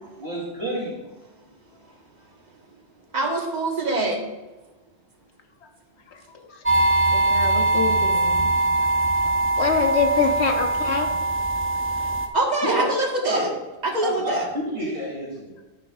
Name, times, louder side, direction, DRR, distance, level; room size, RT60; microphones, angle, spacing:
voice 1, 0.2-1.0 12.6-12.8 13.2-13.5 14.0-15.5, right 1 dB, 55° right, -6 dB, 3.3 m, -28 dB
voice 2, 3.1-4.3 12.3-13.5 13.8-14.5, right 2 dB, 40° right, 1 dB, 1.5 m, -24 dB
voice 3, 6.5-8.5 8.8-8.9 9.2-11.1, left 5 dB, 75° left, 4 dB, 1.3 m, -26 dB
sound 1, 6.7-12.3, right 2 dB, 15° right, 0.5 m, -22 dB
10.0 x 9.7 x 2.4 m, 1.1 s
omnidirectional pair, 1.2 m